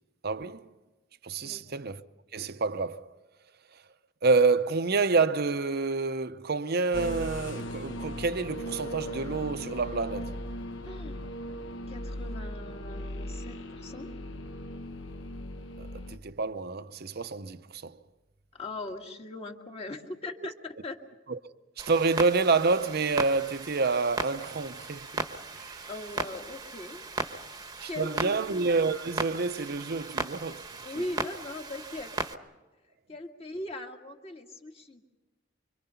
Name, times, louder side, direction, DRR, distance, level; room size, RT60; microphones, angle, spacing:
voice 1, 0.2-0.7 1.2-2.0 2.3-3.1 4.2-10.3 15.8-18.0 21.3-21.4 21.8-25.9 27.8-31.0, right 4 dB, 55° right, 0.8 m, -28 dB
sound 1, 6.9-16.2, equal, 70° left, 1.1 m, -38 dB
voice 2, 10.8-11.3 11.9-14.1 18.5-20.6 20.8-21.0 25.9-27.0 27.9-28.4 30.8-32.1 33.1-35.1, left 2 dB, 30° left, 1.9 m, -40 dB
Clock, 21.8-32.3, right 3 dB, 20° right, 1.1 m, -37 dB
26.0 x 24.5 x 5.7 m
head